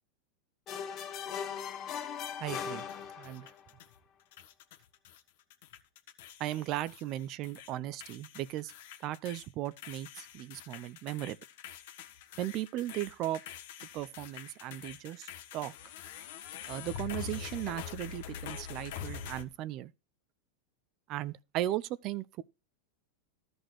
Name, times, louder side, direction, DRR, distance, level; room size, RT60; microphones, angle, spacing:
sound 1, 0.7-3.6, left 8 dB, 30° left, 1.2 m, -39 dB
voice 1, 2.4-2.8 3.2-3.5 6.4-8.7 9.0-11.4 12.4-13.4 13.9-15.7 16.7-19.9 21.1-22.4, right 14 dB, 40° right, 0.5 m, -37 dB
sound 2, 2.5-4.0 4.3-5.2 5.5-7.7 8.0-19.4, left 8 dB, 65° left, 1.4 m, -45 dB
13.5 x 5.2 x 6.0 m
supercardioid pair, 150°, 0 cm